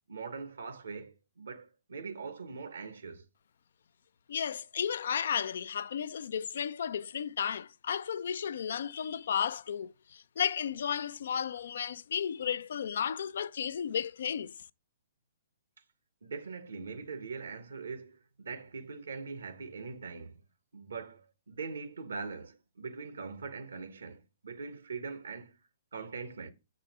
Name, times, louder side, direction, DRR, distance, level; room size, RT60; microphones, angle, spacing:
voice 1, 0.1-3.2 16.2-20.4 20.7-25.6 25.9-26.5, right 4 dB, 85° right, 1.1 m, -42 dB
voice 2, 4.3-14.5, left 8 dB, 70° left, 0.4 m, -33 dB
7.0 x 4.9 x 4.7 m
hypercardioid pair, 130°, 0 cm